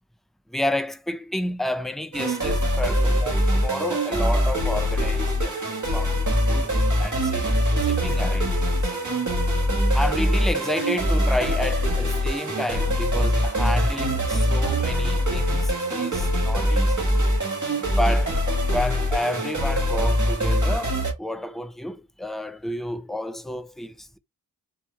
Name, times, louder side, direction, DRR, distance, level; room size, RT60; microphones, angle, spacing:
voice 1, 0.5-5.6 5.9-6.2 6.5-6.7 7.0-7.5 7.8-8.9 9.9-17.1 17.9-24.2, left 1 dB, ahead, 0.4 m, -30 dB
sound 1, 2.1-21.1, equal, 45° right, 1.5 m, -23 dB
4.5 x 3.0 x 3.3 m
wide cardioid pair, 55°, 40 cm